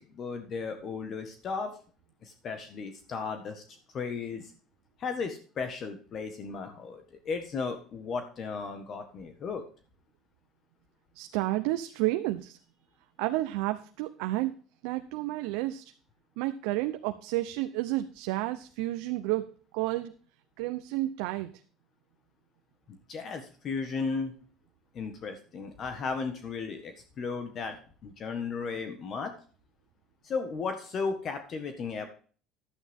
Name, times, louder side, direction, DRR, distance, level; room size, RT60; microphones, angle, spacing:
voice 1, 0.0-1.7 2.2-3.6 3.9-4.5 5.0-9.6 23.1-24.3 24.9-27.8 28.0-29.3 30.2-32.1, left 5 dB, 40° left, 7 dB, 1.5 m, -35 dB
voice 2, 11.2-12.6 13.2-14.5 14.8-15.8 16.4-19.4 19.7-20.1 20.6-21.5, right 17 dB, 85° right, 8 dB, 0.7 m, -31 dB
11.5 x 9.1 x 3.6 m, 0.41 s
cardioid pair, 145°, 0 cm